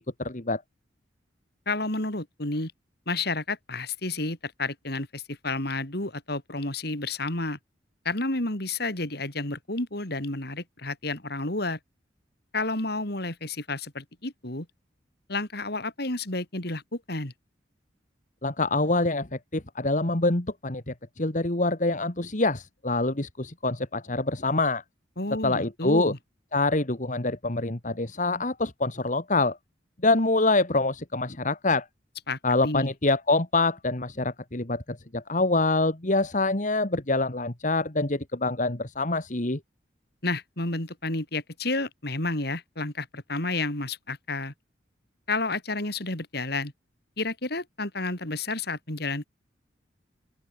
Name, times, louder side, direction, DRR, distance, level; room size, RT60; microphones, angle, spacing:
voice 1, 0.2-0.6 18.4-24.8 25.4-26.1 26.5-29.6 30.0-31.9 32.4-39.6, left 2 dB, 40° left, 1.9 m, -25 dB
voice 2, 1.7-2.7 3.1-7.6 8.0-11.8 12.5-14.7 15.3-17.3 25.2-26.2 32.3-32.9 40.2-44.5 45.3-46.7 47.2-49.3, left 2 dB, 60° left, 4.1 m, -31 dB
open air
head